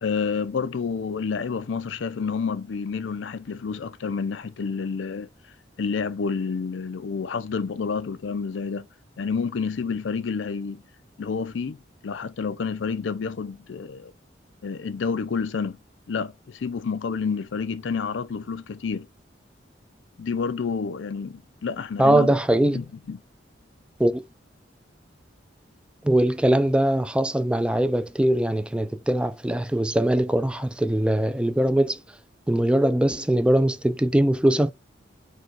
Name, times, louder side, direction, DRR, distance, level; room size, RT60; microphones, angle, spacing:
voice 1, 0.0-5.3 5.8-8.9 9.2-10.8 11.2-11.8 12.0-14.1 14.6-15.8 16.1-19.1 20.2-22.4 22.6-23.2, left 5 dB, 80° left, 0.5 m, -29 dB
voice 2, 22.0-22.8 24.0-24.2 26.0-32.0 32.5-34.7, right 1 dB, 5° right, 0.3 m, -21 dB
4.5 x 2.3 x 4.6 m
head